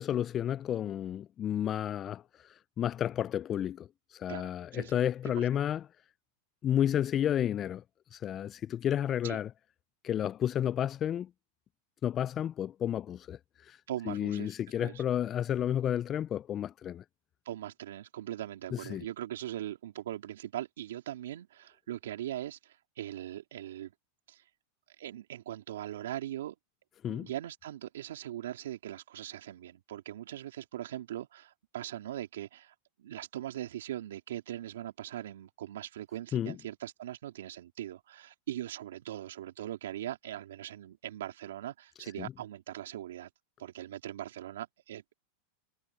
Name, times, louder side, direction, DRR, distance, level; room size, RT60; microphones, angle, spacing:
voice 1, 0.0-5.8 6.6-7.8 8.1-9.5 10.0-11.3 12.0-13.8 14.1-17.0 18.7-19.0 27.0-27.3 36.3-36.5 42.2-42.3, left 10 dB, 35° left, 0.3 m, -31 dB
voice 2, 4.3-5.0 5.2-5.4 9.2-9.4 13.9-15.0 17.4-23.9 24.3-24.4 25.0-26.5 27.1-43.3 43.6-45.1, right 12 dB, 80° right, 3.1 m, -40 dB
hypercardioid pair, 110°, 0 cm